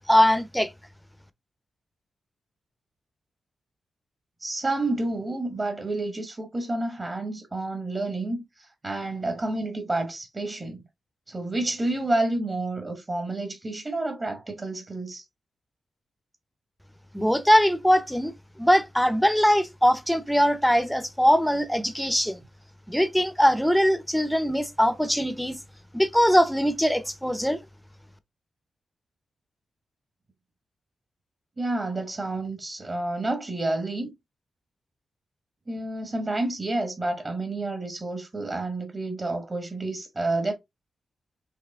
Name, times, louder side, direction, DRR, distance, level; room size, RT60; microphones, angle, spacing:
voice 1, 0.1-0.7 17.1-18.3 18.6-22.4 22.9-25.6 25.9-27.6, equal, ahead, 0.6 m, -21 dB
voice 2, 4.4-10.8 11.3-15.2 31.6-34.1 35.7-40.5, right 2 dB, 35° right, 1.1 m, -29 dB
4.9 x 2.9 x 3.4 m
cardioid pair, 85°, 0 cm